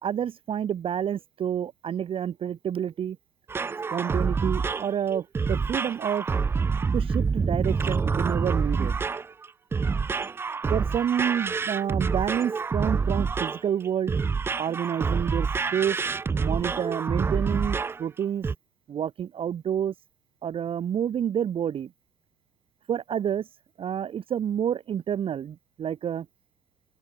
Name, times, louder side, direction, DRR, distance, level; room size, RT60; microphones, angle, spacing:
voice 1, 0.0-3.2 3.9-6.3 6.9-8.9 10.7-14.2 14.6-16.0 16.3-18.5 18.9-19.9 20.4-21.9 22.9-23.5 23.8-26.3, right 9 dB, 30° right, 1.1 m, -29 dB
sound 1, 3.5-18.0 18.4-18.5, right 5 dB, 15° right, 0.4 m, -27 dB
open air
supercardioid pair, 120°, 17 cm